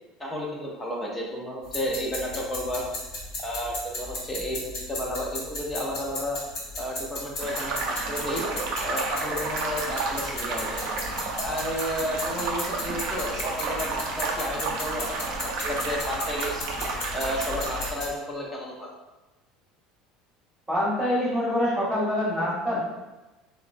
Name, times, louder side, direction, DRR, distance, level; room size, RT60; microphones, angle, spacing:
voice 1, 0.2-2.8 3.4-6.4 6.8-8.4 8.8-10.8 11.4-16.7 17.1-18.9, equal, 10° left, -2 dB, 0.4 m, -32 dB
sound 1, 1.6-18.1, left 2 dB, 40° left, 0.9 m, -36 dB
sound 2, 7.4-17.9, right 3 dB, 55° right, 0.4 m, -31 dB
voice 2, 20.7-22.8, left 1 dB, 10° right, -10 dB, 1.0 m, -25 dB
3.5 x 2.1 x 2.4 m, 1.1 s
cardioid pair, 175°, 0 cm